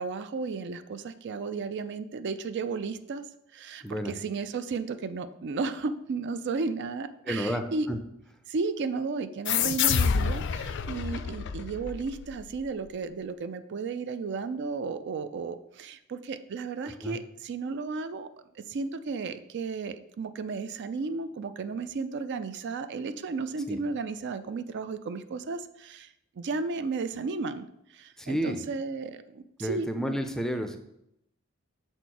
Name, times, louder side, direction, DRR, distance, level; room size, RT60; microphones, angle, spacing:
voice 1, 0.0-3.2 3.5-7.9 8.5-18.3 18.6-26.1 26.4-27.7 27.9-30.2, right 4 dB, 55° right, 11 dB, 0.4 m, -34 dB
voice 2, 3.8-4.1 7.3-8.0 17.0-17.2 23.7-23.8 28.2-28.6 29.6-30.8, equal, ahead, 6 dB, 0.5 m, -31 dB
sound 1, 9.5-12.7, left 7 dB, 60° left, 0.4 m, -28 dB
6.7 x 4.3 x 4.6 m, 0.79 s
head